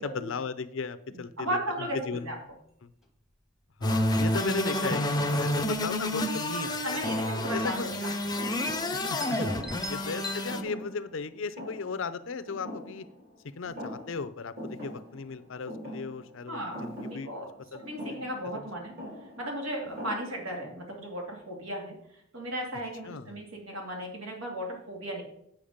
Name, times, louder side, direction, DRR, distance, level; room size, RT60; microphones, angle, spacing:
voice 1, 0.0-2.3 2.8-2.9 3.8-7.0 7.5-7.9 8.9-13.0 13.6-17.3 17.7-18.2 23.1-23.4, left 4 dB, 65° left, 13 dB, 0.5 m, -36 dB
voice 2, 1.1-2.4 6.8-8.1 9.6-9.8 16.5-17.5 17.8-18.9 19.2-25.2, right 1 dB, 80° right, 0 dB, 2.6 m, -36 dB
sound 1, 2.2-2.3 2.5-2.6 3.0-3.4 3.9-4.1 4.4-5.1 6.2-6.3 6.5-6.7 7.3-7.6 7.8-7.9 8.6-8.7 9.1-10.4, left 2 dB, ahead, 1.0 m, -42 dB
sound 2, 3.8-10.6, left 1 dB, 20° left, 0.6 m, -29 dB
Thump thud, 8.4-13.4 13.6-14.3 14.6-20.7, equal, 50° right, 3.9 m, -43 dB
8.6 x 6.0 x 5.1 m, 0.74 s
head